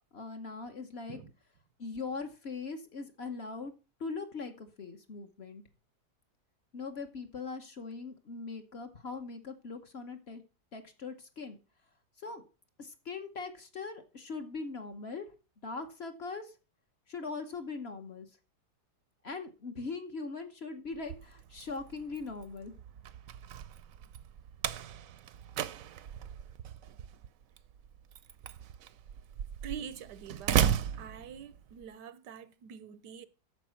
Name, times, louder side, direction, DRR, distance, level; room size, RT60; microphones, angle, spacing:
voice 1, 0.1-1.2 1.8-3.7 4.0-5.6 6.7-10.4 10.7-11.6 12.2-12.4 12.8-15.3 15.6-16.5 17.1-18.3 19.2-22.7, left 4 dB, 45° left, 1.1 m, -41 dB
Slam, 20.9-31.8, right 9 dB, 65° right, 0.9 m, -36 dB
voice 2, 29.6-30.7 30.9-33.3, right 8 dB, 90° right, 1.4 m, -45 dB
9.2 x 6.8 x 5.8 m
omnidirectional pair, 1.8 m